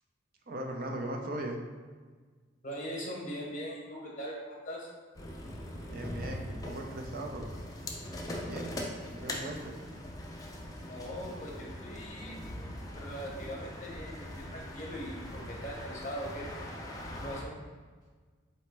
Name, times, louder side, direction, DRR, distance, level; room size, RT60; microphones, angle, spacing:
voice 1, 0.5-1.6 5.7-7.5 8.3-8.8 9.1-9.8, right 1 dB, 45° right, 2 dB, 0.5 m, -39 dB
voice 2, 2.6-4.9 10.8-12.4 12.9-16.5 17.2-17.6, equal, 40° left, -2 dB, 0.9 m, -41 dB
sound 1, 2.7-5.1, right 7 dB, 65° right, 1.5 m, -57 dB
sound 2, 5.1-17.4, left 1 dB, 20° left, 0.4 m, -41 dB
4.1 x 3.0 x 3.2 m, 1.5 s
head